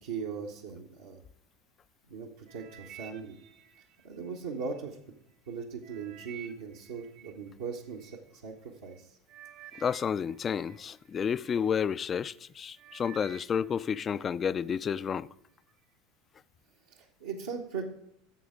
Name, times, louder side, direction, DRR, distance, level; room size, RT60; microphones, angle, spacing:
voice 1, 0.0-1.2 2.1-3.5 4.0-5.0 5.5-9.2 16.9-17.8, right 5 dB, 75° right, 1.2 m, -39 dB
sound 1, 2.5-4.8 5.3-8.2 8.9-9.0 9.3-11.7 12.2-12.5 12.8-14.3 14.6-15.1 15.7-15.8, right 10 dB, 55° right, 1.1 m, -52 dB
voice 2, 9.8-15.3, left 7 dB, 35° left, 0.4 m, -31 dB
9.9 x 7.1 x 5.0 m
hypercardioid pair, 80°, 0 cm